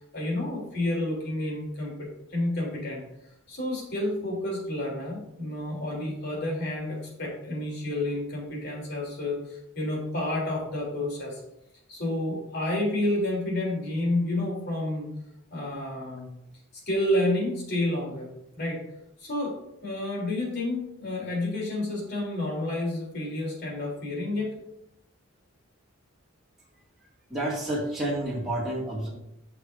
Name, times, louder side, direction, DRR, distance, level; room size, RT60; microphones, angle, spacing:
voice 1, 0.1-3.0 3.5-11.4 11.9-15.1 15.5-16.3 16.9-18.3 18.6-18.8 19.2-24.5, left 1 dB, 50° left, -2 dB, 3.2 m, -30 dB
voice 2, 27.3-29.1, right 1 dB, ahead, -8 dB, 2.0 m, -29 dB
13.0 x 5.9 x 2.6 m, 0.81 s
head